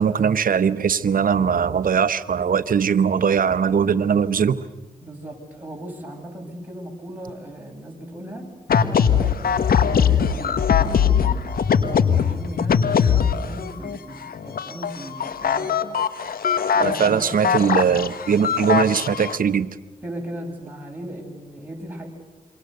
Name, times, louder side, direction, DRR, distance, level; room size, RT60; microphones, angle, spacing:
voice 1, 0.0-4.6 16.8-19.7, right 7 dB, 65° right, 13 dB, 1.0 m, -20 dB
voice 2, 5.0-8.5 9.1-11.5 11.9-15.8 16.7-17.5 20.0-22.1, right 1 dB, 10° right, 0 dB, 7.9 m, -37 dB
sound 1, 8.7-14.0 14.2-19.4, left 7 dB, 70° left, 1.3 m, -21 dB
27.5 x 24.0 x 6.7 m, 1.2 s
supercardioid pair, 45°, 16 cm